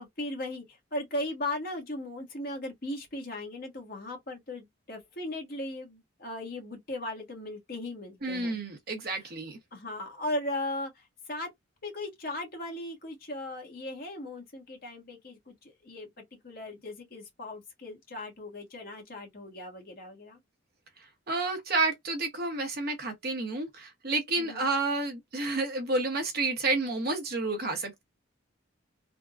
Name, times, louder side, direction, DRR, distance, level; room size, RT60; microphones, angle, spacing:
voice 1, 0.0-8.6 9.1-9.3 9.7-11.5 11.8-20.4 24.4-24.7, left 1 dB, 45° left, 1.3 m, -37 dB
voice 2, 8.2-9.6 21.3-28.0, right 3 dB, 50° right, 0.9 m, -30 dB
3.4 x 2.2 x 2.4 m
head